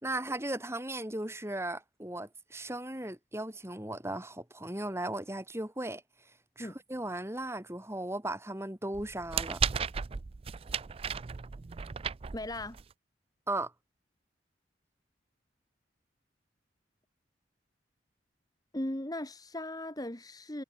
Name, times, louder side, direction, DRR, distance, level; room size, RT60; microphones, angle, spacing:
voice 1, 0.0-6.0 6.6-9.6 13.5-13.7, right 1 dB, 15° right, 3.8 m, -36 dB
sound 1, 8.9-12.9, right 7 dB, 30° right, 0.4 m, -35 dB
voice 2, 12.3-12.8 18.7-20.6, left 1 dB, 20° left, 1.8 m, -37 dB
head